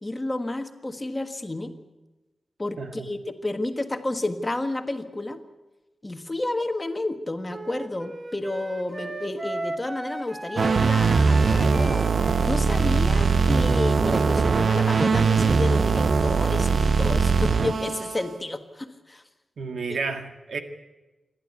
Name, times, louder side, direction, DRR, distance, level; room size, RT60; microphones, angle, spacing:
voice 1, 0.0-1.7 2.6-5.4 6.0-12.1 12.4-19.2 19.9-20.0, left 2 dB, 20° left, 7 dB, 1.5 m, -31 dB
voice 2, 2.8-3.1 19.6-20.6, right 4 dB, 85° right, 7 dB, 1.9 m, -31 dB
Wind instrument woodwind instrument, 7.5-15.0, right 2 dB, 30° right, 1.2 m, -37 dB
sound 1, 10.6-18.3, right 5 dB, 60° right, 0.7 m, -21 dB
27.5 x 11.5 x 9.6 m, 1.1 s
wide cardioid pair, 135°, 0 cm